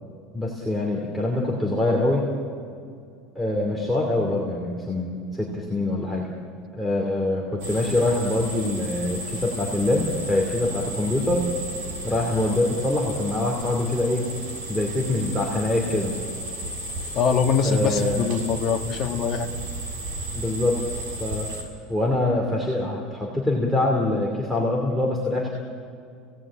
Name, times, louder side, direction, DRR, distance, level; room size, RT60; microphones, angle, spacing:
voice 1, 0.3-2.2 3.3-6.3 6.7-11.5 12.0-14.3 14.7-16.2 17.6-18.2 20.3-20.8 21.2-21.5 21.9-25.5, left 2 dB, ahead, -2 dB, 2.6 m, -24 dB
sound 1, 7.6-21.6, right 1 dB, 70° right, 6.8 m, -34 dB
voice 2, 17.1-19.5, left 6 dB, 35° left, 3 dB, 1.6 m, -23 dB
30.0 x 18.0 x 8.7 m, 2.4 s
cardioid pair, 170°, 0 cm